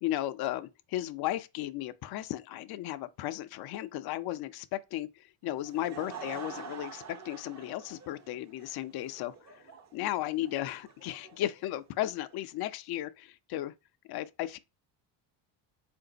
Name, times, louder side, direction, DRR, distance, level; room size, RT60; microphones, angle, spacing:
voice 1, 0.0-9.6 9.9-13.7 14.1-14.6, left 14 dB, 50° left, 0.5 m, -35 dB
Laughter / Crowd, 5.4-12.4, right 6 dB, 35° right, 0.8 m, -47 dB
3.7 x 2.6 x 3.8 m
supercardioid pair, 85°, 49 cm